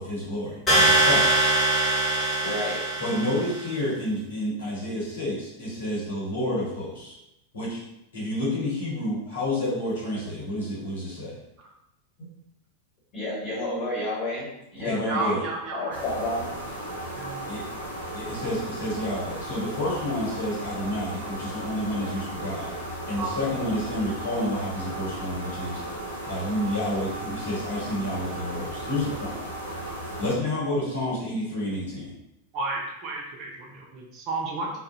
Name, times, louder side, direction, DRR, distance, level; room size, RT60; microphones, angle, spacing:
voice 1, 0.0-1.4 3.0-7.2 7.5-7.8 8.1-11.3 14.8-15.4 17.5-17.6 18.1-22.7 23.1-25.8 26.2-29.4 30.2-32.1, left 1 dB, 65° left, -7 dB, 0.9 m, -29 dB
sound 1, 0.7-3.6, right 2 dB, 15° left, 1.1 m, -22 dB
voice 2, 2.4-2.8 13.1-14.4 14.7-15.3 15.7-16.5, left 1 dB, 35° left, -7 dB, 1.5 m, -30 dB
voice 3, 15.1-16.0 16.8-17.4 23.2-23.3 32.5-34.7, right 3 dB, 35° right, -1 dB, 0.5 m, -32 dB
sound 2, 15.9-30.3, right 1 dB, 90° left, 0.6 m, -36 dB
2.3 x 2.0 x 2.7 m, 0.86 s
figure-of-eight pair, 90°, 0 cm